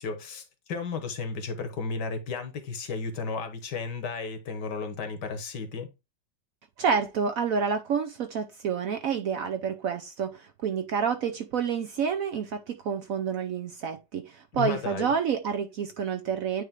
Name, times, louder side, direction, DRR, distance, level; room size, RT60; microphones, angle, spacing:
voice 1, 0.0-5.9 14.5-15.1, left 4 dB, 70° left, 1.7 m, -34 dB
voice 2, 6.8-16.6, right 6 dB, 65° right, 0.9 m, -29 dB
9.1 x 3.2 x 3.5 m
omnidirectional pair, 1.9 m